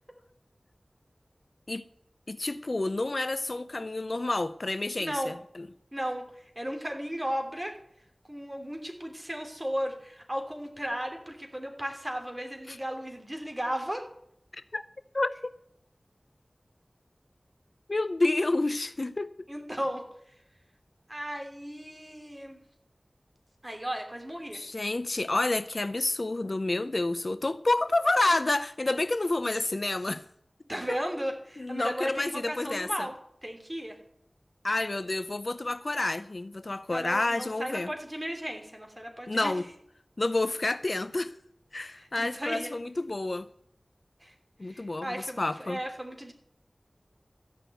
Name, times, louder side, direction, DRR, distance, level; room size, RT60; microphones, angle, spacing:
voice 1, 2.3-5.7 12.7-12.8 14.5-14.8 15.1-15.5 17.9-19.3 24.5-30.2 30.9-31.0 31.6-33.1 34.6-37.9 39.3-39.7 40.2-41.4 41.7-43.5 44.6-45.8, left 2 dB, 60° left, 0.5 m, -29 dB
voice 2, 5.0-5.4 5.9-7.7 8.3-14.1 19.5-20.0 21.1-22.6 23.6-24.6 30.7-33.1 33.4-34.0 36.9-39.5 42.0-42.7 44.2-44.3 44.6-46.3, equal, 20° right, 3.0 m, -35 dB
14.0 x 6.0 x 9.1 m
wide cardioid pair, 60°, 0 cm